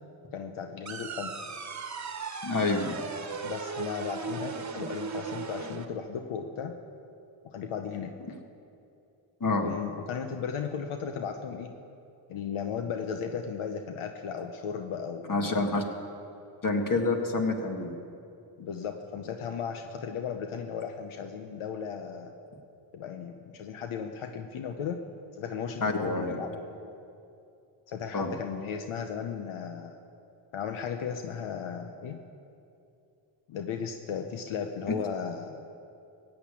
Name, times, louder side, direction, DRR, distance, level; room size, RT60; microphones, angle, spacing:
voice 1, 0.3-1.4 3.4-6.8 7.4-8.1 9.6-11.7 12.3-15.7 18.6-22.3 22.9-25.0 25.4-26.9 27.9-30.0 30.5-32.2 33.5-35.6, left 7 dB, 85° left, 5 dB, 0.9 m, -36 dB
sound 1, 0.9-5.9, right 5 dB, 35° right, 1.3 m, -37 dB
voice 2, 2.4-3.0 9.4-9.7 15.3-15.8 16.6-17.9 25.8-26.3 28.1-28.3, left 3 dB, 40° left, 3 dB, 2.1 m, -27 dB
16.0 x 9.0 x 8.5 m, 2.6 s
cardioid pair, 70°, 49 cm